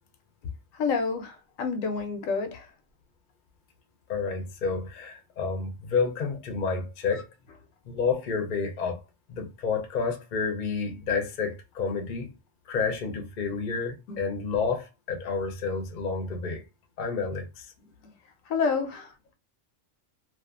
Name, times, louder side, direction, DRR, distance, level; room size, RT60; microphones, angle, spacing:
voice 1, 0.8-2.7 14.1-14.2 18.5-19.3, left 5 dB, 80° left, 1.0 m, -29 dB
voice 2, 4.1-7.3 7.9-9.0 9.3-12.3 12.7-16.6 17.0-17.7, left 5 dB, 50° left, 0.6 m, -30 dB
2.4 x 2.3 x 2.4 m
omnidirectional pair, 1.4 m